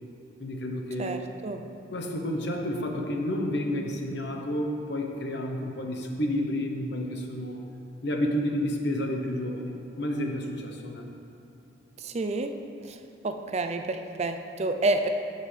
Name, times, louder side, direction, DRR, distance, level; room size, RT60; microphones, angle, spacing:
voice 1, 0.4-1.1 1.9-7.6 8.0-11.0, left 1 dB, 55° left, 2 dB, 0.9 m, -30 dB
voice 2, 1.0-1.6 12.0-12.5 12.9-13.0 13.2-15.1, right 2 dB, 35° right, 6 dB, 0.4 m, -29 dB
14.5 x 5.4 x 3.3 m, 2.5 s
head